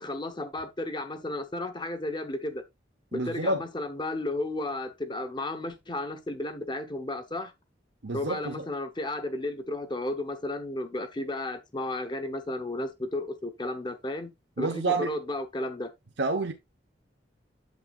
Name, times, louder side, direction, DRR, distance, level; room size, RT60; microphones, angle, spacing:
voice 1, 0.0-2.6 3.1-7.5 8.1-14.3 14.6-15.9, left 1 dB, 25° left, 0.9 m, -33 dB
voice 2, 3.1-3.6 8.0-8.7 14.6-15.1 16.2-16.5, right 3 dB, 75° right, 0.9 m, -28 dB
8.4 x 7.2 x 2.4 m
head